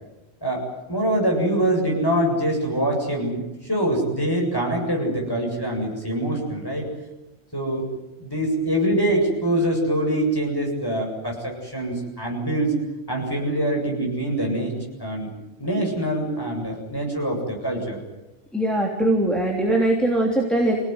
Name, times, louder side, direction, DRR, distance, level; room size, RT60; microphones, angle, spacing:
voice 1, 0.4-6.9 7.5-7.9 8.2-12.7 13.1-14.7 15.0-15.3 15.6-18.0, right 1 dB, 20° left, -1 dB, 7.8 m, -24 dB
voice 2, 18.5-20.7, right 1 dB, ahead, -1 dB, 3.2 m, -21 dB
27.5 x 18.0 x 9.7 m, 0.95 s
omnidirectional pair, 1.1 m